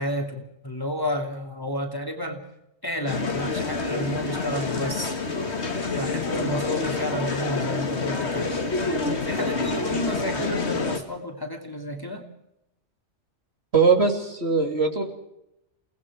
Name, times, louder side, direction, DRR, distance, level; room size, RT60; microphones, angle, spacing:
voice 1, 0.0-2.4 2.8-5.2 5.9-8.5 9.2-12.3, left 1 dB, 15° left, 2 dB, 2.7 m, -31 dB
sound 1, 3.1-11.0, left 3 dB, 60° left, 2.3 m, -27 dB
voice 2, 13.7-15.0, right 5 dB, 55° right, 3 dB, 3.4 m, -20 dB
29.5 x 19.0 x 4.9 m, 0.83 s
omnidirectional pair, 1.3 m